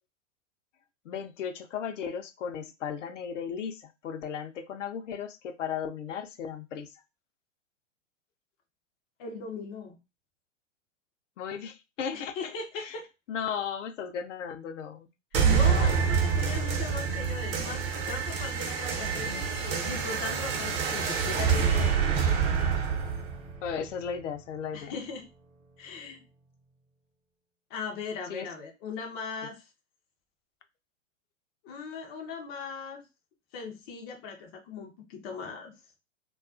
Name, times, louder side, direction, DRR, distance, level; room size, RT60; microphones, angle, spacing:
voice 1, 1.1-6.9 11.4-12.9 13.3-15.1 15.5-15.9 23.6-24.9 28.3-28.5, left 7 dB, 70° left, 8 dB, 0.5 m, -36 dB
voice 2, 9.2-10.0 12.1-13.1 15.4-22.3 24.7-25.3 25.8-26.2 27.7-29.6 31.6-33.0 33.5-35.7, left 5 dB, 20° left, 2 dB, 0.3 m, -39 dB
sound 1, 15.3-24.3, right 6 dB, 50° right, 0.7 m, -27 dB
2.3 x 2.2 x 2.4 m, 0.25 s
hypercardioid pair, 115°, 38 cm